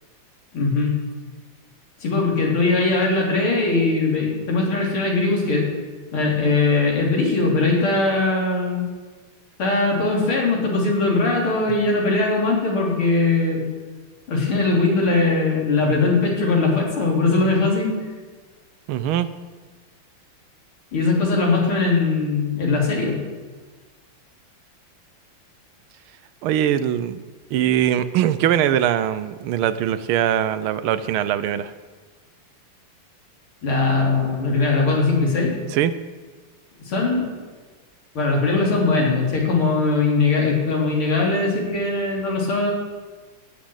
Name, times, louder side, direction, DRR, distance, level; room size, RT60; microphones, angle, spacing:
voice 1, 0.5-1.0 2.0-5.7 6.1-8.9 9.6-13.7 14.3-17.9 20.9-23.2 33.6-35.5 36.8-37.3 38.1-42.7, left 3 dB, 75° left, -2 dB, 4.0 m, -20 dB
voice 2, 18.9-19.3 26.4-27.2 27.5-31.7 35.7-35.9, right 10 dB, 75° right, 14 dB, 1.5 m, -21 dB
17.5 x 6.3 x 8.0 m, 1.4 s
omnidirectional pair, 2.4 m